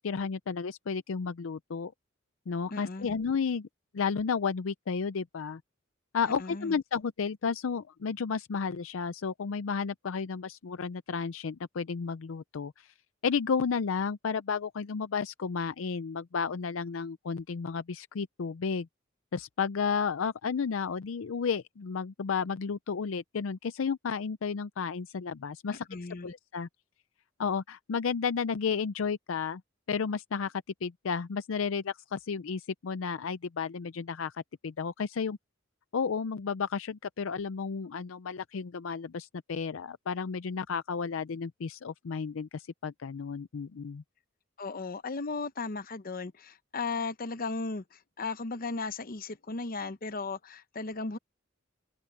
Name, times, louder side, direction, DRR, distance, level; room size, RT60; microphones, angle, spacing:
voice 1, 0.0-1.9 2.5-3.7 3.9-5.6 6.1-12.9 13.2-18.9 19.3-25.9 26.2-26.7 27.4-29.6 29.9-35.4 35.9-44.0, left 5 dB, 75° left, 0.5 m, -32 dB
voice 2, 2.7-3.2 6.4-6.8 25.7-26.3 44.6-51.2, left 3 dB, 45° left, 0.8 m, -36 dB
open air
head